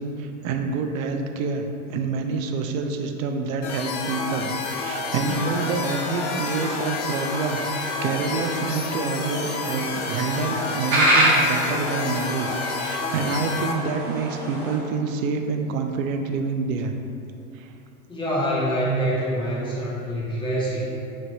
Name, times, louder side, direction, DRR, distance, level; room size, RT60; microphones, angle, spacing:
voice 1, 0.0-16.9 17.5-17.7, right 4 dB, 70° right, 5 dB, 0.5 m, -27 dB
sound 1, 3.6-13.7, left 4 dB, 35° left, 0.5 m, -30 dB
sound 2, 5.2-14.8, right 1 dB, 30° right, 1.2 m, -28 dB
voice 2, 18.1-20.8, right 1 dB, 10° left, -7 dB, 1.0 m, -25 dB
3.1 x 2.6 x 4.4 m, 2.6 s
hypercardioid pair, 100°, 44 cm